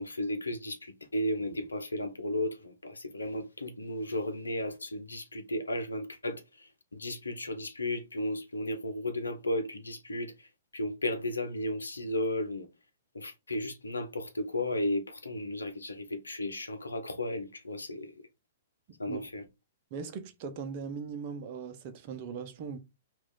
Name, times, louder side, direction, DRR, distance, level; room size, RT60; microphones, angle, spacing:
voice 1, 0.0-12.7 13.1-18.2 19.0-19.4, left 1 dB, 90° left, 0.8 m, -34 dB
voice 2, 18.9-19.2 19.9-22.8, right 6 dB, 45° right, 0.8 m, -39 dB
3.0 x 2.6 x 3.8 m
hypercardioid pair, 120°, 0 cm